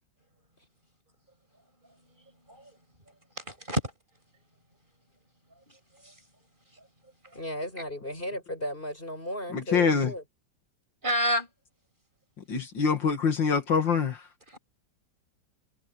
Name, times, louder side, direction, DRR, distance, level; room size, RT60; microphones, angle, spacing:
voice 1, 3.4-3.8 5.7-5.8 6.0-6.1 11.0-11.5 14.5-14.6, equal, 25° right, 7.8 m, -28 dB
voice 2, 7.3-10.2, left 1 dB, 25° left, 7.9 m, -35 dB
voice 3, 9.5-10.1 12.5-14.2, left 5 dB, 75° left, 2.8 m, -25 dB
omnidirectional pair, 2.0 m